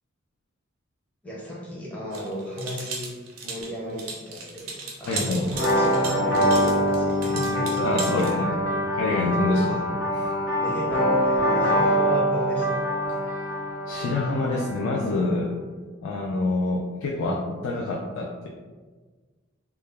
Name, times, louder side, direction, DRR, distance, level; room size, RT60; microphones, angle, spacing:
voice 1, 1.2-3.1 3.4-4.7 5.0-9.0 9.5-9.6 10.6-12.9, equal, 5° left, -6 dB, 0.5 m, -34 dB
sound 1, 2.1-8.3, right 4 dB, 90° right, 0.5 m, -36 dB
voice 2, 5.1-5.4 7.8-8.5 9.0-9.8 10.1-10.3 13.3-13.5 13.9-15.5 16.0-18.5, left 2 dB, 80° left, -1 dB, 0.3 m, -26 dB
sound 2, 5.5-15.1, equal, 65° left, 0.9 m, -24 dB
2.2 x 2.1 x 3.3 m, 1.4 s
head